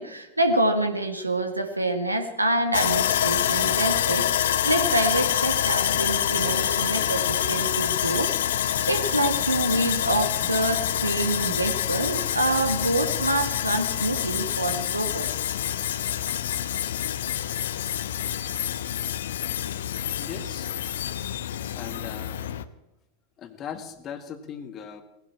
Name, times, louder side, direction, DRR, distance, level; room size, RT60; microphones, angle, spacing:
voice 1, 0.0-8.5 8.9-15.2, right 1 dB, 85° right, 7 dB, 1.8 m, -26 dB
Sawing, 2.7-22.6, left 10 dB, 60° left, 0.8 m, -26 dB
voice 2, 20.1-20.7 21.8-22.4 23.4-25.0, left 7 dB, 30° left, 9 dB, 1.7 m, -38 dB
18.5 x 15.5 x 4.4 m, 0.97 s
figure-of-eight pair, 90°, 0 cm